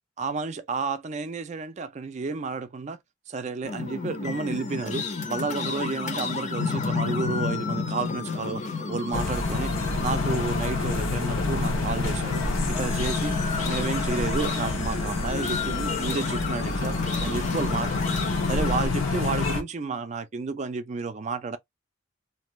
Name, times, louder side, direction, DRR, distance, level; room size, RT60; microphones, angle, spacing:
voice 1, 0.2-3.0 3.3-17.9 18.4-21.6, right 4 dB, 35° right, 0.3 m, -31 dB
sound 1, 3.6-18.9, left 4 dB, 35° left, 0.6 m, -32 dB
sound 2, 9.1-19.6, left 3 dB, 85° left, 0.8 m, -28 dB
2.6 x 2.3 x 3.0 m
head